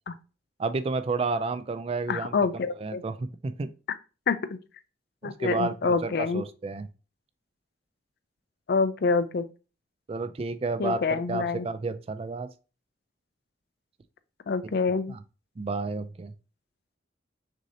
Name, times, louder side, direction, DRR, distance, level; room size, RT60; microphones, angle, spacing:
voice 1, 0.6-2.3 2.8-3.7 5.2-6.9 10.1-12.5 15.1-15.2 15.6-16.3, right 3 dB, 30° right, 0.3 m, -31 dB
voice 2, 2.1-3.0 4.3-4.4 5.2-6.4 8.7-9.5 10.8-11.7 14.5-15.1, left 4 dB, 55° left, 0.4 m, -26 dB
6.1 x 2.8 x 2.7 m
head